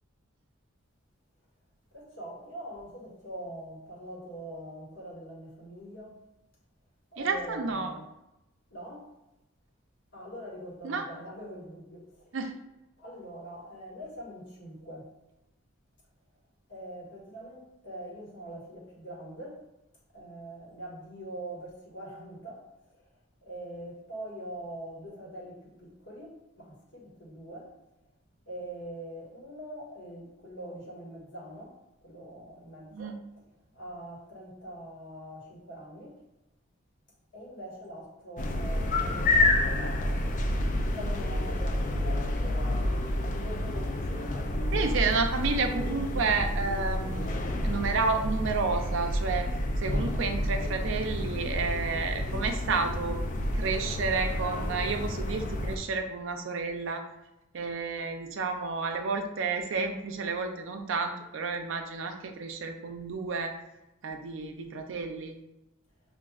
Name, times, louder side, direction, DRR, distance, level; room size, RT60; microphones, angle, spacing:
voice 1, 1.9-6.2 7.1-8.1 8.7-9.1 10.1-12.4 13.0-15.1 16.7-19.6 20.1-23.1 23.4-27.7 28.5-33.2 33.7-36.2 37.3-40.3 40.9-44.7, right 1 dB, 60° left, 1.4 m, -43 dB
voice 2, 7.2-8.0 10.8-11.0 12.3-12.5 32.9-33.1 44.7-53.2 53.5-57.0 57.5-63.6 64.0-65.4, right 4 dB, 65° right, 0.5 m, -31 dB
sound 1, 38.4-55.8, left 1 dB, 40° left, 0.4 m, -29 dB
5.8 x 2.5 x 2.4 m
head